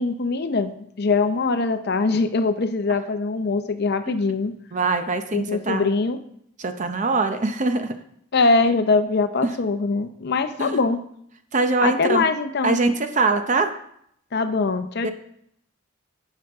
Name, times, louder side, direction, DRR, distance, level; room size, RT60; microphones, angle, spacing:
voice 1, 0.0-4.5 5.3-6.2 8.3-11.0 11.8-12.8 14.3-15.1, left 3 dB, 50° left, 10 dB, 0.6 m, -22 dB
voice 2, 4.7-5.9 6.6-8.0 9.4-9.5 10.6-10.8 11.5-12.2 12.6-13.8 15.0-15.1, right 3 dB, 35° right, 8 dB, 0.7 m, -23 dB
10.5 x 7.6 x 3.6 m, 0.71 s
head